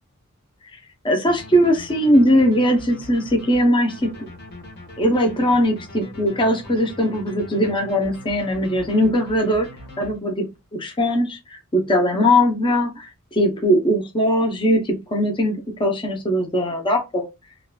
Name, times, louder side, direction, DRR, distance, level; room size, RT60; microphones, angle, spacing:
voice 1, 1.0-4.1 5.0-9.7 10.0-10.4 10.7-17.3, equal, 20° left, 0.6 m, -20 dB
sound 1, 1.3-10.6, left 1 dB, 50° left, 0.9 m, -41 dB
3.5 x 2.4 x 2.2 m
head